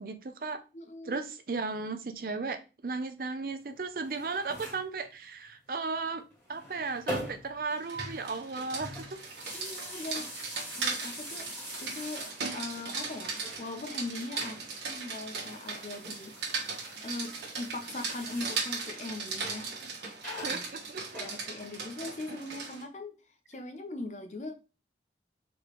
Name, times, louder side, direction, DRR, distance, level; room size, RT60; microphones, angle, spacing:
voice 1, 0.0-0.6 1.1-2.6 2.8-6.2 6.5-9.1 20.4-21.2, right 4 dB, 50° right, 0.5 m, -35 dB
voice 2, 0.7-1.2 9.5-10.3 10.8-11.5 11.8-16.3 16.6-19.8 20.5-20.6 21.2-23.1 23.5-24.5, left 2 dB, 40° left, 0.6 m, -40 dB
sound 1, 3.9-4.9 6.3-7.6 7.9-12.7 13.0-14.1 15.2-18.8 19.3-19.7 20.2-21.8, equal, 10° left, 2.3 m, -43 dB
Rain, 7.7-22.8, right 4 dB, 80° right, 1.3 m, -38 dB
3.8 x 3.7 x 3.0 m
head